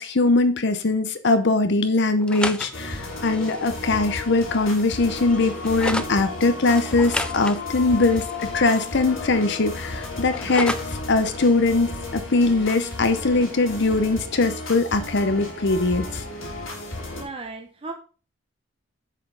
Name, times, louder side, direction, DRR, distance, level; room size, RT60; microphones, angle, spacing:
voice 1, 0.0-10.8 11.1-16.2, left 3 dB, 60° left, 9 dB, 0.7 m, -21 dB
sound 1, 2.2-6.1 6.7-9.1 9.4-11.0, left 1 dB, 5° left, 0.4 m, -34 dB
sound 2, 2.7-17.2, left 2 dB, 80° left, 3.3 m, -33 dB
voice 2, 17.1-17.9, right 3 dB, 30° right, 3 dB, 0.8 m, -36 dB
7.4 x 5.1 x 5.4 m, 0.36 s
head